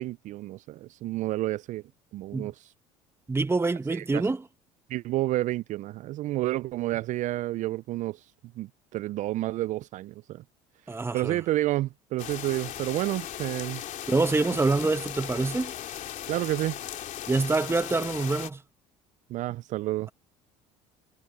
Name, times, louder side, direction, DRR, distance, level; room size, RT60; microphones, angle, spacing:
voice 1, 0.0-1.8 2.1-2.7 3.9-4.3 4.9-8.3 8.6-10.4 10.8-13.8 16.3-16.8 19.3-20.1, right 16 dB, 55° right, 0.4 m, -30 dB
voice 2, 3.3-4.4 10.9-11.4 14.1-15.7 17.3-18.6, right 3 dB, 15° right, 1.3 m, -26 dB
sound 1, 12.2-18.5, left 11 dB, 55° left, 3.1 m, -37 dB
supercardioid pair, 80°, 16 cm